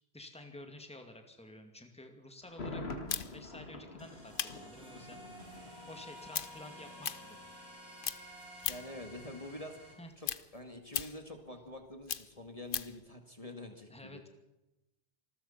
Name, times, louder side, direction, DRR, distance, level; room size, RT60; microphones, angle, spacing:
voice 1, 0.0-2.9 3.3-5.2 5.9-7.4 10.0-10.1 13.9-14.3, left 1 dB, 5° left, 5 dB, 2.3 m, -51 dB
Thunder, 2.4-6.3 6.6-6.7, left 2 dB, 75° left, 2.2 m, -45 dB
sound 1, 3.1-7.8 8.0-9.0 9.4-13.0, left 7 dB, 55° left, 1.0 m, -39 dB
sound 2, 4.0-9.9, equal, 70° right, 6.6 m, -52 dB
voice 2, 8.7-14.2, left 1 dB, 35° left, 5 dB, 2.2 m, -47 dB
27.0 x 20.5 x 5.7 m, 0.95 s
omnidirectional pair, 1.1 m